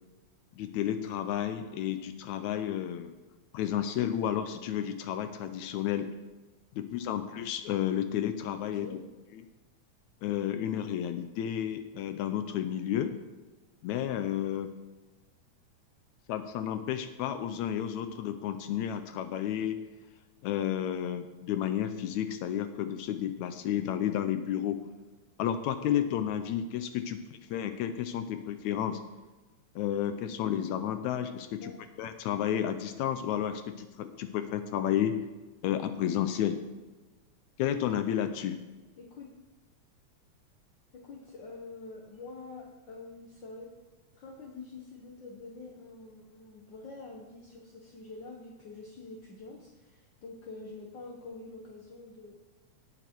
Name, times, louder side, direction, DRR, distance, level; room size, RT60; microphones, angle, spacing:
voice 1, 0.6-3.1 3.5-6.1 6.8-8.9 10.2-13.1 13.8-14.7 16.3-19.8 20.4-24.8 25.4-29.0 29.8-31.7 32.0-35.2 35.6-36.6 37.6-38.6, left 10 dB, 80° left, 9 dB, 1.9 m, -31 dB
voice 2, 39.0-39.3 40.9-43.7 44.1-52.3, left 3 dB, 55° left, -1 dB, 1.3 m, -46 dB
18.0 x 6.0 x 4.5 m, 1.2 s
omnidirectional pair, 3.5 m